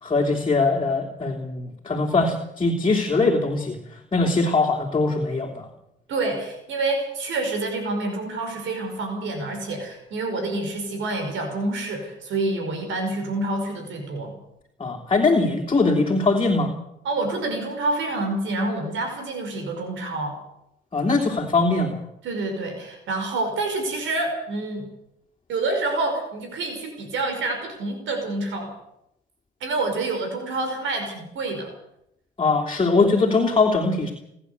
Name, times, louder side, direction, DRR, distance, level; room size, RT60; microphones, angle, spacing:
voice 1, 0.0-5.7 14.8-16.7 20.9-22.0 32.4-34.1, left 3 dB, 25° left, 0 dB, 3.1 m, -21 dB
voice 2, 6.1-14.3 17.1-20.4 22.2-24.9 25.5-28.7 29.6-31.7, right 2 dB, 75° right, 5 dB, 5.5 m, -27 dB
29.5 x 11.0 x 8.1 m, 0.81 s
cardioid pair, 90°, 20 cm